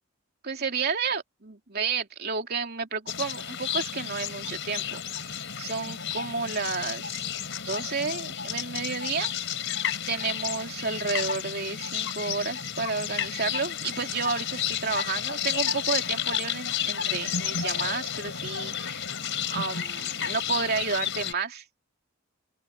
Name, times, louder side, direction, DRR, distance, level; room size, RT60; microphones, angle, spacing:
voice 1, 0.4-7.3 7.6-9.3 10.1-19.0 19.5-21.6, right 5 dB, 45° right, 3.1 m, -31 dB
sound 1, 3.1-21.3, left 8 dB, 60° left, 5.2 m, -32 dB
open air
head